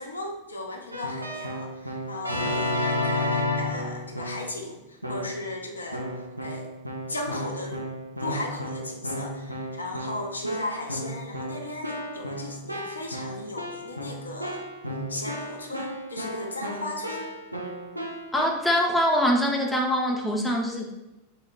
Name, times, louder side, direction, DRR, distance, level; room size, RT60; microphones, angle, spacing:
voice 1, 0.0-6.0 6.4-6.7 7.1-7.9 8.2-14.6 15.1-17.3, left 2 dB, 75° left, 2 dB, 0.3 m, -36 dB
Keyboard (musical), 0.9-4.6 5.0-5.5 5.9-18.4, left 1 dB, 85° right, 0.3 m, -33 dB
voice 2, 18.3-20.9, equal, 5° left, 0 dB, 0.4 m, -24 dB
2.1 x 2.0 x 3.6 m, 0.96 s
figure-of-eight pair, 90°, 0 cm